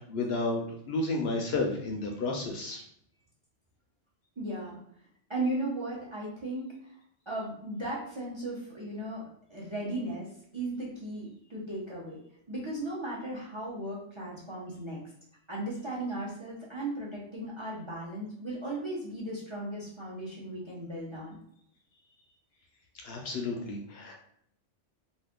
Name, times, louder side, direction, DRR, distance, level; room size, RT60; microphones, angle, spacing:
voice 1, 0.1-2.8 23.0-24.2, left 2 dB, 65° left, 1 dB, 0.7 m, -32 dB
voice 2, 4.4-4.8 5.3-6.6 7.3-9.2 9.5-12.2 12.5-15.0 15.5-21.4, right 1 dB, 30° right, -5 dB, 0.7 m, -36 dB
2.5 x 2.5 x 3.5 m, 0.69 s
omnidirectional pair, 1.2 m